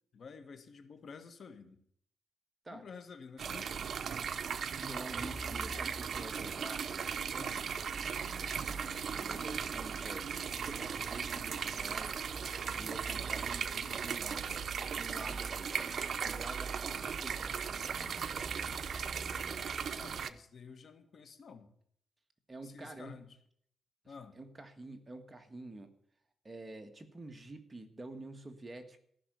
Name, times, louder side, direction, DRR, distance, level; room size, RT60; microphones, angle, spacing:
voice 1, 0.1-1.8 2.7-4.1 7.3-7.7 20.0-21.7 22.6-23.4 24.0-24.4, left 5 dB, 55° left, 8 dB, 1.6 m, -51 dB
sound 1, 3.4-20.3, right 7 dB, 60° right, 0.7 m, -37 dB
voice 2, 4.8-6.8 9.2-12.2 12.7-14.6 14.9-15.9 16.2-17.8 22.5-23.2 24.4-25.9 26.4-29.0, right 2 dB, 20° right, 6 dB, 1.6 m, -48 dB
sound 2, 5.1-20.4, equal, 5° left, 5.2 m, -51 dB
14.5 x 6.1 x 9.2 m, 0.65 s
cardioid pair, 105°, 0 cm